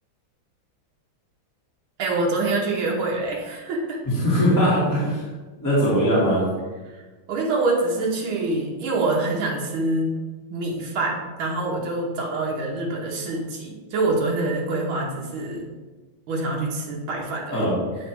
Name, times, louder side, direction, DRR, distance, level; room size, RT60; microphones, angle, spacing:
voice 1, 2.0-4.0 6.9-7.0 7.3-10.2 10.5-15.6 16.3-17.7, right 2 dB, 85° right, -2 dB, 1.9 m, -25 dB
voice 2, 4.2-5.2 5.6-6.4 17.5-17.7, equal, 10° left, -9 dB, 1.7 m, -20 dB
8.7 x 3.2 x 4.6 m, 1.3 s
omnidirectional pair, 2.2 m